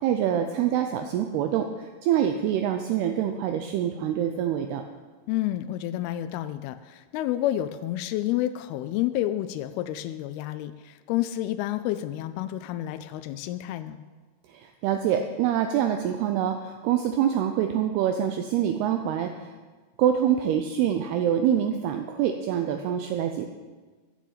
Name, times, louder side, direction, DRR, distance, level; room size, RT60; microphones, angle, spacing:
voice 1, 0.0-4.8 14.5-19.5 20.0-23.5, right 9 dB, 80° right, 6 dB, 2.5 m, -25 dB
voice 2, 5.3-14.0, left 13 dB, 85° left, 10 dB, 2.3 m, -29 dB
13.0 x 7.3 x 7.4 m, 1.4 s
omnidirectional pair, 4.9 m